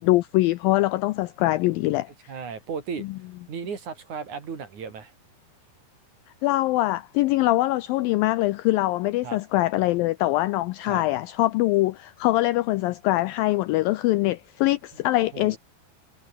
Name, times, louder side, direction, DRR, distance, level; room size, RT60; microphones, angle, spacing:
voice 1, 0.0-2.3 6.4-15.6, left 18 dB, 90° left, 2.0 m, -23 dB
voice 2, 2.3-3.1 3.5-5.1 9.2-9.4 10.8-11.0 15.3-15.6, right 6 dB, 50° right, 4.3 m, -35 dB
omnidirectional pair, 4.8 m